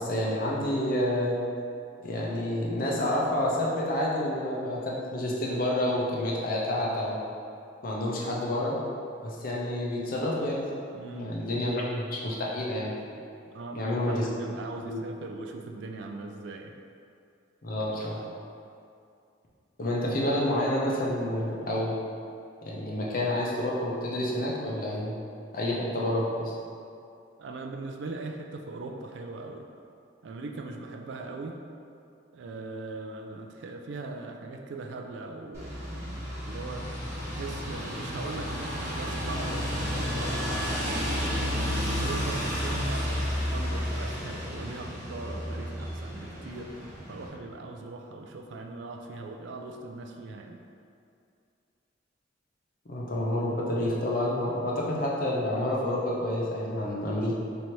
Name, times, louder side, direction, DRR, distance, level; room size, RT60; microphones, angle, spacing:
voice 1, 0.0-1.4 2.0-7.2 7.8-8.8 9.2-10.6 11.1-12.9 13.7-14.2 14.8-15.0 17.6-18.2 19.8-21.9 22.6-25.1 25.5-26.5 52.9-57.3, left 1 dB, 45° left, -4 dB, 0.6 m, -29 dB
voice 2, 10.9-11.4 13.5-16.7 27.4-29.7 30.2-31.6 32.3-36.9 37.3-50.6, right 3 dB, 65° right, 3 dB, 0.3 m, -40 dB
sound 1, 35.5-47.3, equal, 15° right, 1.1 m, -32 dB
3.1 x 2.7 x 4.4 m, 2.5 s
head